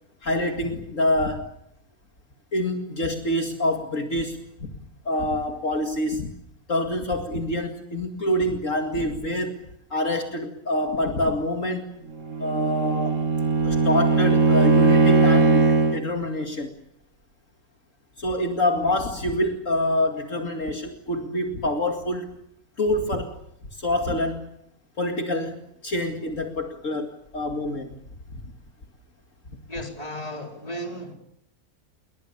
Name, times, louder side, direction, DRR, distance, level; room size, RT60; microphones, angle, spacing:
voice 1, 0.2-1.5 2.5-4.7 5.0-6.3 6.7-12.0 12.4-13.2 13.6-16.7 18.2-22.3 22.8-23.4 23.7-24.6 25.0-28.0, left 1 dB, 60° left, 3 dB, 2.6 m, -26 dB
Bowed string instrument, 12.2-16.1, right 4 dB, 60° right, 2.2 m, -19 dB
voice 2, 29.7-31.1, equal, 25° left, 2 dB, 4.5 m, -34 dB
28.5 x 23.0 x 7.0 m, 0.75 s
omnidirectional pair, 1.5 m